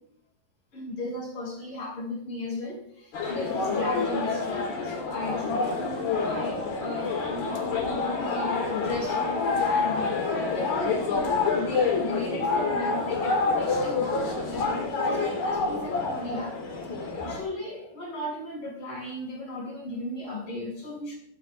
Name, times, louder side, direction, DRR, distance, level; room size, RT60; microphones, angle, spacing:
voice 1, 0.7-7.6 8.2-14.1 14.4-16.6 17.3-21.1, left 1 dB, 40° left, -3 dB, 7.7 m, -36 dB
sound 1, 3.1-17.4, left 4 dB, 85° left, 5.3 m, -27 dB
25.5 x 17.5 x 2.5 m, 0.71 s
omnidirectional pair, 4.1 m